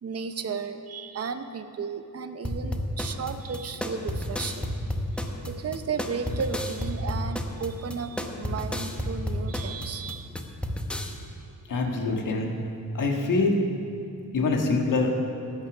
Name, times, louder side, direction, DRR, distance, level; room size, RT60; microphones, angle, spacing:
voice 1, 0.0-4.7 5.5-10.3, right 5 dB, 50° right, 9 dB, 0.8 m, -34 dB
sound 1, 2.4-11.1, left 1 dB, 5° left, 0.9 m, -31 dB
voice 2, 11.7-12.5 12.9-13.6 14.3-15.1, left 3 dB, 75° left, 2 dB, 1.6 m, -24 dB
14.5 x 9.9 x 6.1 m, 2.5 s
wide cardioid pair, 145°, 32 cm